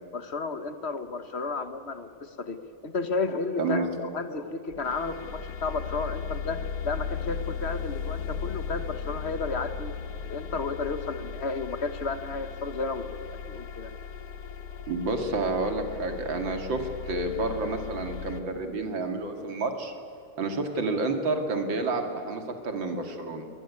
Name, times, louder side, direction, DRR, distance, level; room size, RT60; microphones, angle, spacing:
voice 1, 0.1-9.9 10.2-13.2 13.5-13.9, left 4 dB, 40° left, 10 dB, 1.3 m, -32 dB
voice 2, 3.6-3.9 14.9-19.9 20.4-23.5, right 3 dB, 85° right, 5 dB, 3.0 m, -29 dB
sound 1, 4.7-18.4, left 7 dB, 65° left, 1.9 m, -37 dB
22.0 x 19.5 x 9.6 m, 2.7 s
omnidirectional pair, 2.0 m